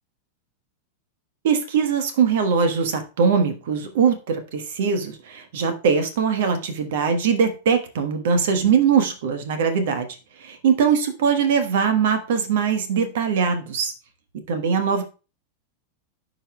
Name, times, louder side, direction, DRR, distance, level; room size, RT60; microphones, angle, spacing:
voice 1, 1.4-10.2 10.6-13.9 14.5-15.0, right 6 dB, 55° right, 8 dB, 1.2 m, -21 dB
14.0 x 5.1 x 2.3 m, 0.32 s
figure-of-eight pair, 90°, 0 cm